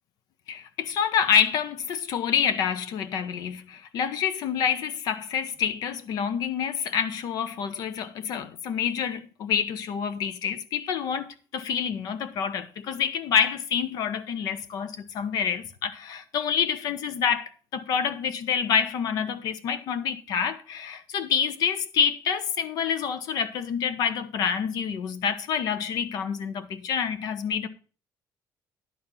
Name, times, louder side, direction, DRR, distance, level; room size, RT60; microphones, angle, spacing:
voice 1, 0.5-27.7, left 7 dB, 70° left, 1.1 m, -27 dB
11.0 x 4.4 x 7.2 m
cardioid pair, 165°, 7 cm